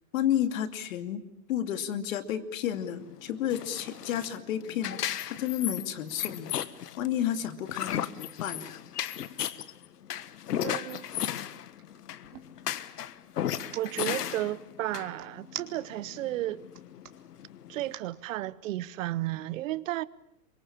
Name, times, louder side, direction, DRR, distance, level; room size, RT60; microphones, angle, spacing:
voice 1, 0.1-1.2 1.5-5.0 5.3-6.5 7.0-8.8, left 10 dB, 60° left, 2.6 m, -31 dB
sound 1, 2.7-17.9, left 10 dB, 80° left, 1.6 m, -36 dB
sound 2, 10.3-10.5 11.0-12.5 13.4-13.8 15.2-16.2 16.6-17.1 17.8-18.1, right 11 dB, 75° right, 3.0 m, -44 dB
voice 2, 10.6-11.0 13.8-16.6 17.7-20.1, right 15 dB, 55° right, 1.1 m, -33 dB
27.5 x 24.0 x 8.7 m
hypercardioid pair, 150°, 46 cm